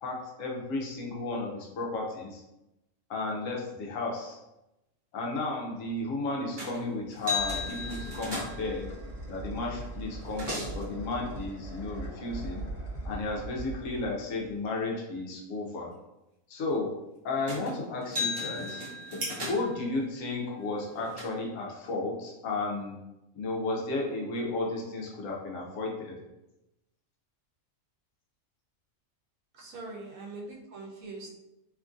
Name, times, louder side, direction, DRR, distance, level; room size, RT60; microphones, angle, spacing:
voice 1, 0.0-2.4 3.1-4.4 5.1-8.9 9.3-12.6 13.0-15.9 16.5-16.9 17.2-18.8 19.1-23.0 23.3-26.2, left 2 dB, 75° left, -2 dB, 1.0 m, -33 dB
sound 1, 6.6-6.8 7.1-8.7 9.7-9.8 10.1-10.8 17.5-17.7 18.0-19.8 20.6-21.2, left 3 dB, 35° right, 0.4 m, -35 dB
sound 2, 6.9-14.7, right 2 dB, 45° left, 0.6 m, -41 dB
sound 3, 14.9-22.6, right 2 dB, 65° right, 1.0 m, -49 dB
voice 2, 29.5-31.3, right 3 dB, 90° right, -1 dB, 1.1 m, -42 dB
2.9 x 2.5 x 2.4 m, 0.93 s
omnidirectional pair, 1.4 m